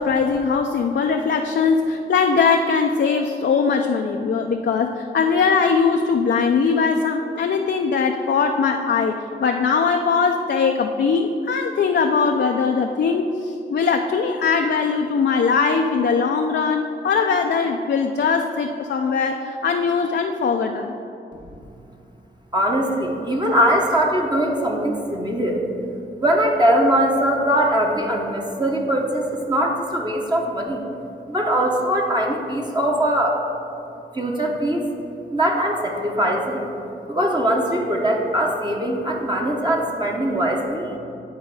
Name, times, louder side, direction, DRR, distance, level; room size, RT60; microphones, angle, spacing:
voice 1, 0.0-9.1 9.4-20.9, left 5 dB, 60° left, 3 dB, 0.5 m, -20 dB
voice 2, 22.5-25.6 26.2-30.8 31.3-33.4 34.1-34.9 35.3-36.6 37.1-40.9, right 1 dB, 20° right, -1 dB, 0.9 m, -21 dB
10.5 x 4.1 x 4.8 m, 2.7 s
cardioid pair, 60°, 19 cm